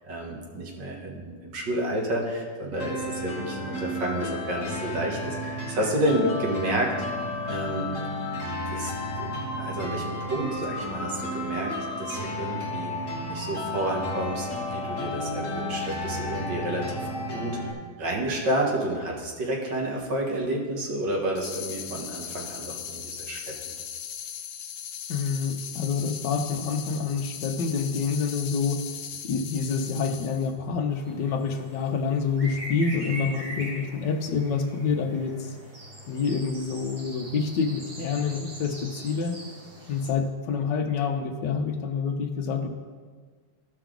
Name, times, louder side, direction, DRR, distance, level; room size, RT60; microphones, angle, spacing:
voice 1, 0.1-6.9 7.5-7.9 8.7-8.9 9.2-12.9 13.3-16.8 17.3-17.6 18.0-23.4, right 1 dB, 65° right, -1 dB, 2.1 m, -30 dB
sound 1, 2.7-17.7, left 1 dB, 45° left, 1.4 m, -32 dB
sound 2, 21.4-30.5, left 9 dB, 90° left, 1.5 m, -38 dB
voice 2, 25.1-28.8 29.3-35.5 36.1-39.4 39.9-42.7, left 5 dB, 70° left, 5 dB, 1.4 m, -27 dB
sound 3, 30.9-40.1, equal, 30° right, 1.4 m, -41 dB
14.0 x 5.8 x 3.8 m, 1.5 s
omnidirectional pair, 2.1 m